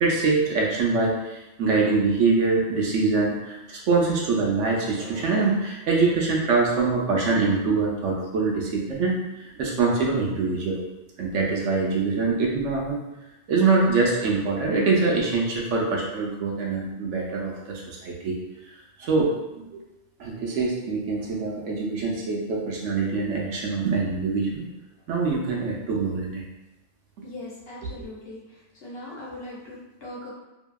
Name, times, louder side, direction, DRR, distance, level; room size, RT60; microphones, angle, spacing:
voice 1, 0.0-10.8 11.2-13.0 13.5-18.4 19.0-19.3 19.7-19.8 20.2-24.7 25.1-26.4 27.8-28.1, right 4 dB, 70° right, -2 dB, 0.9 m, -24 dB
voice 2, 27.2-28.4 28.8-30.3, left 1 dB, 55° left, -6 dB, 1.0 m, -39 dB
2.7 x 2.7 x 2.2 m, 0.99 s
omnidirectional pair, 1.3 m